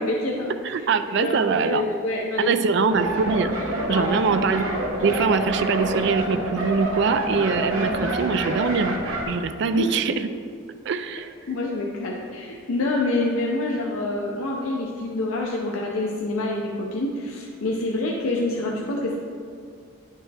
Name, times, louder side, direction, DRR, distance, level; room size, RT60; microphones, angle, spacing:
voice 1, 0.0-0.9 1.2-2.5 2.8-2.9 3.9-4.2 7.7-7.9 9.7-9.9 11.5-19.2, left 2 dB, 85° left, -2 dB, 0.6 m, -27 dB
voice 2, 0.6-1.8 2.4-3.5 3.9-4.7 5.0-9.0 9.3-10.3 10.9-11.3, right 5 dB, 55° right, 10 dB, 0.3 m, -23 dB
sound 1, 2.9-9.2, right 1 dB, 80° right, 1.1 m, -27 dB
9.8 x 4.4 x 3.4 m, 2.2 s
head